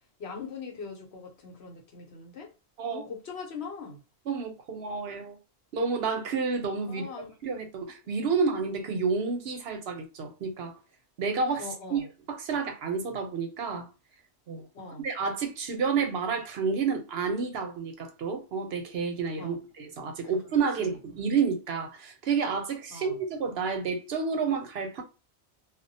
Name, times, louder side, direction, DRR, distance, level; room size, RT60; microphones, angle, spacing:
voice 1, 0.2-2.5 2.9-4.0 6.9-7.3 11.6-12.1 14.7-15.1 19.4-19.6 20.8-21.0 22.9-23.2, left 5 dB, 75° left, 1.1 m, -41 dB
voice 2, 4.3-5.4 5.7-7.1 7.4-10.7 11.2-12.0 12.3-13.9 14.5-14.7 15.0-25.0, right 5 dB, 70° right, 0.8 m, -30 dB
2.3 x 2.1 x 2.6 m
omnidirectional pair, 1.1 m